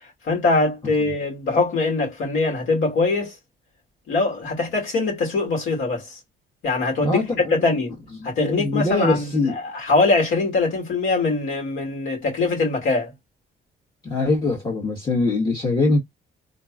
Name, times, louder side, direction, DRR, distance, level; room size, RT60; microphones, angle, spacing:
voice 1, 0.2-3.3 4.1-6.2 6.6-7.2 7.5-7.9 8.2-13.1, left 3 dB, 85° left, 2.4 m, -22 dB
voice 2, 7.0-7.7 8.2-8.3 8.6-9.6 14.0-16.0, left 2 dB, 25° left, 1.5 m, -22 dB
3.8 x 2.9 x 2.5 m
cardioid pair, 90°, 20 cm